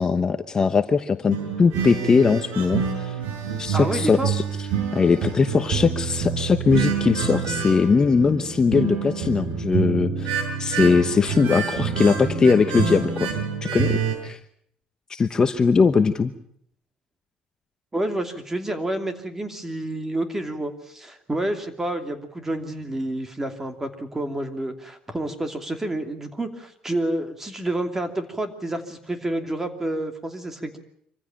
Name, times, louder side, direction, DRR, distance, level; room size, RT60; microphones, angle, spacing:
voice 1, 0.0-3.1 3.6-4.4 4.9-13.3 13.6-14.4 15.1-16.3, left 5 dB, 25° left, 9 dB, 1.0 m, -20 dB
sound 1, 1.3-14.2, right 6 dB, 90° right, 6.7 m, -27 dB
voice 2, 3.7-4.3 17.9-30.8, right 1 dB, 15° right, 7 dB, 2.8 m, -29 dB
25.0 x 15.0 x 8.9 m, 0.69 s
cardioid pair, 125°, 3 cm